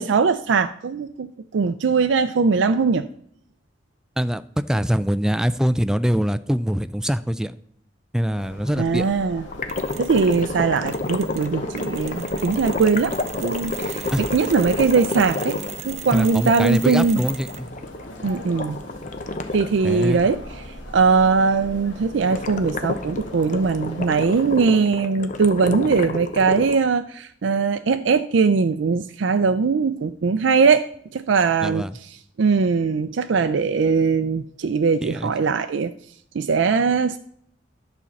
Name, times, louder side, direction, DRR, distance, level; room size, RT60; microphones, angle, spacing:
voice 1, 0.0-3.1 8.8-9.4 10.0-15.6 15.8-17.2 18.2-18.8 19.5-20.4 20.9-31.8 32.4-35.9 36.3-37.2, right 5 dB, 70° right, 9 dB, 0.4 m, -20 dB
voice 2, 4.2-7.5 8.1-9.1 14.1-14.2 16.1-17.7 19.8-20.3 31.6-32.0 35.0-35.3, equal, 5° right, 13 dB, 0.3 m, -23 dB
sound 1, 8.3-24.6, left 1 dB, 70° left, 2.0 m, -40 dB
sound 2, 9.5-20.4 22.3-26.8, left 2 dB, 40° left, 0.8 m, -30 dB
Mechanisms, 9.7-10.5 10.9-17.7, right 8 dB, 35° right, 0.7 m, -38 dB
11.0 x 4.3 x 7.0 m, 0.64 s
head